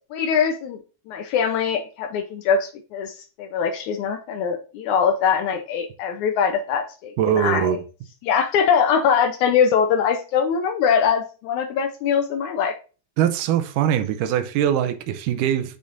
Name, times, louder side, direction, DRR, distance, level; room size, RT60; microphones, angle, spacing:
voice 1, 0.1-0.8 1.1-7.8 8.2-12.8, left 7 dB, 90° left, 1.6 m, -22 dB
voice 2, 7.2-7.8 13.2-15.8, right 10 dB, 85° right, 1.9 m, -22 dB
8.4 x 6.4 x 2.5 m
omnidirectional pair, 4.4 m